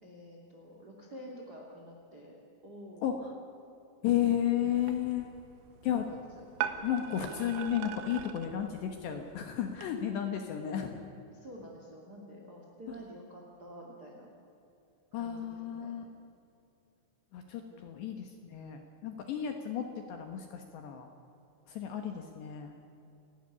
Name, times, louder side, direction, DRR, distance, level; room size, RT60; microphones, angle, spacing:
voice 1, 0.0-2.4 2.6-3.1 5.9-6.5 11.3-14.3 15.2-15.9 17.7-17.9, equal, 35° right, -1 dB, 1.7 m, -49 dB
voice 2, 3.0-3.3 4.0-5.3 5.8-6.1 6.8-11.0 15.1-16.0 17.3-21.1 21.7-22.8, left 10 dB, 70° left, 5 dB, 3.0 m, -33 dB
sound 1, 4.7-9.9, right 10 dB, 70° right, 2.7 m, -42 dB
29.0 x 11.5 x 9.8 m, 2.8 s
omnidirectional pair, 6.0 m